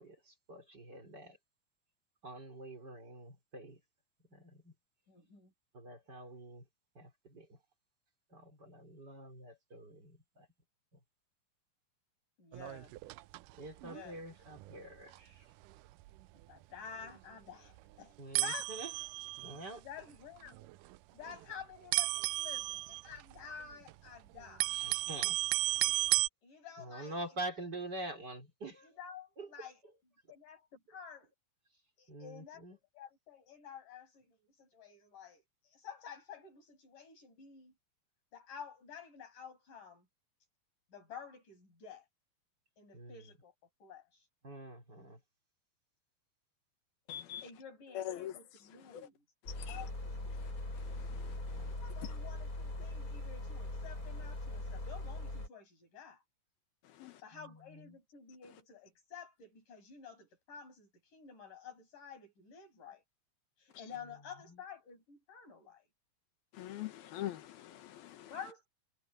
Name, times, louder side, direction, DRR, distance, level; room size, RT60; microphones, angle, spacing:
voice 1, 0.0-1.4 2.2-3.8 4.3-4.7 5.7-6.7 6.9-7.6 8.3-10.5 13.6-15.5 18.2-18.9 19.4-19.8 24.7-25.4 26.8-28.9 29.4-29.5 32.1-32.8 42.9-43.3 44.4-45.2 51.1-51.7 57.3-58.0 64.5-64.6, right 2 dB, 25° right, 4.3 m, -46 dB
voice 2, 5.1-5.5 12.4-13.0 13.8-14.3 16.5-18.1 18.4-18.7 19.4-19.5 19.8-20.7 21.1-24.8 26.4-27.2 28.8-29.8 30.3-31.3 32.0-32.7 32.9-37.7 38.3-40.1 40.9-42.1 42.8-43.5 43.8-44.3 47.4-49.2 49.7-50.2 51.6-56.2 57.0-63.0 63.6-65.9 68.2-68.7, left 7 dB, 60° left, 8.6 m, -51 dB
sound 1, 12.5-13.5 13.8-14.0 14.6-14.8 15.1-15.2 15.6-15.7 16.0-16.2 17.0-17.1 17.8-17.9 18.3-19.7 20.5-21.0 21.2-21.4 21.9-23.9 24.3-26.3, right 20 dB, 85° right, 1.8 m, -34 dB
voice 3, 47.1-47.4 47.9-48.3 49.6-49.8 50.9-51.4 57.0-57.2 66.5-68.3, left 12 dB, 80° left, 3.3 m, -43 dB
sound 2, 49.5-55.5, left 1 dB, 20° left, 7.3 m, -41 dB
omnidirectional pair, 4.3 m